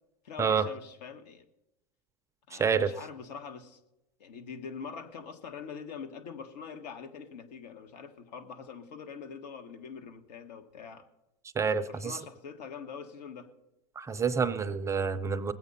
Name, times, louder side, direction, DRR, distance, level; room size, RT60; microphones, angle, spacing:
voice 1, 0.2-1.4 2.5-3.8 4.2-11.1 11.9-13.5, left 6 dB, 80° left, 9 dB, 1.6 m, -44 dB
voice 2, 2.5-2.9 11.6-12.2 14.0-15.5, right 6 dB, 15° right, 10 dB, 0.4 m, -28 dB
20.0 x 8.1 x 5.5 m, 0.91 s
supercardioid pair, 140°, 21 cm